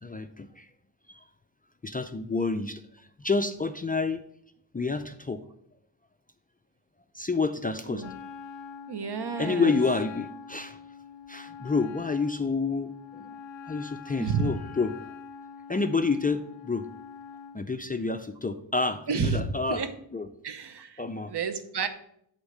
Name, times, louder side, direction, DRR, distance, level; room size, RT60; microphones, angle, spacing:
voice 1, 0.0-0.7 1.1-1.2 1.8-4.2 4.7-5.4 7.1-8.1 9.4-10.8 11.3-13.3 13.7-14.9 15.7-16.9 17.5-19.8 20.1-20.3 21.0-21.3, left 4 dB, 20° left, 9 dB, 0.4 m, -29 dB
Wind instrument woodwind instrument, 8.0-17.6, left 6 dB, 75° left, 0.6 m, -44 dB
voice 2, 8.9-9.8 14.2-14.5 19.1-19.9 20.4-21.0 21.3-21.9, right 5 dB, 60° right, 10 dB, 0.9 m, -30 dB
8.1 x 3.6 x 6.5 m, 0.72 s
wide cardioid pair, 85°, 45 cm